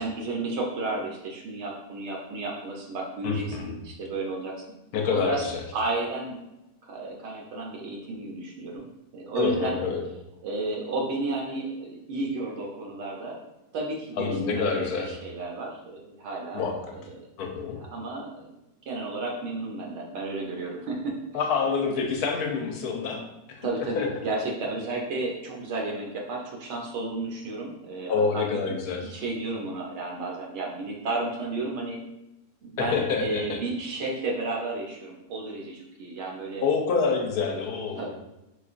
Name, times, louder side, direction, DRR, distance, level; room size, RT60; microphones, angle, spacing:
voice 1, 0.0-4.5 5.1-5.4 5.7-6.4 6.8-8.8 9.1-9.8 10.4-13.4 13.7-17.3 17.7-18.4 18.9-21.2 23.6-28.6 29.1-32.0 32.6-36.6 38.0-38.1, right 2 dB, 80° right, -1 dB, 0.6 m, -32 dB
voice 2, 3.2-3.7 4.9-5.6 9.4-10.0 14.2-15.1 16.5-17.0 17.4-17.8 21.3-23.2 23.5-23.7 23.9-24.1 28.1-29.1 32.8-33.6 36.6-38.1, left 5 dB, 70° left, 2 dB, 1.0 m, -27 dB
4.7 x 2.4 x 2.4 m, 0.93 s
omnidirectional pair, 1.8 m